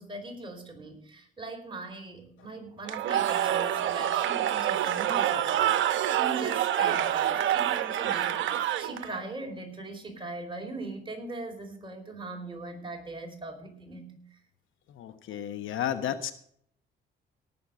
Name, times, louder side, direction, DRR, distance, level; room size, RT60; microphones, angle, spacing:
voice 1, 0.0-14.4, right 2 dB, 25° right, 2 dB, 4.6 m, -40 dB
Cheering / Crowd, 2.9-9.2, right 11 dB, 75° right, 1.0 m, -27 dB
voice 2, 14.9-16.3, left 10 dB, 80° left, 10 dB, 1.2 m, -32 dB
18.0 x 7.4 x 4.9 m, 0.64 s
cardioid pair, 90°, 20 cm